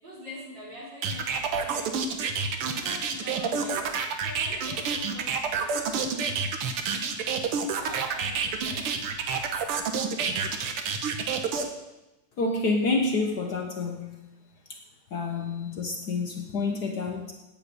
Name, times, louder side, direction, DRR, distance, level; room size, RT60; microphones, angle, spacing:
voice 1, 0.0-2.0 2.6-6.2 7.8-9.1, equal, 55° right, -6 dB, 5.8 m, -44 dB
sound 1, 1.0-11.6, right 5 dB, 90° right, 2.1 m, -28 dB
voice 2, 12.4-14.2 15.1-17.3, left 3 dB, 55° left, 3 dB, 1.4 m, -28 dB
9.4 x 9.2 x 8.3 m, 1.0 s
omnidirectional pair, 2.4 m